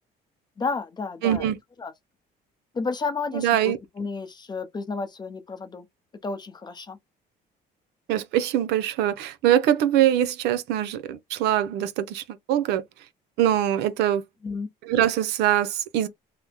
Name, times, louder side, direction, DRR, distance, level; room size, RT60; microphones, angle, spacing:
voice 1, 0.6-1.5 1.8-1.9 2.7-5.9 6.2-7.0 14.4-14.7, left 4 dB, 25° left, 0.7 m, -31 dB
voice 2, 1.2-1.6 3.3-3.8 8.1-12.8 13.4-14.2 14.8-16.1, right 11 dB, 85° right, 0.5 m, -23 dB
2.9 x 2.0 x 3.4 m
cardioid pair, 110°, 17 cm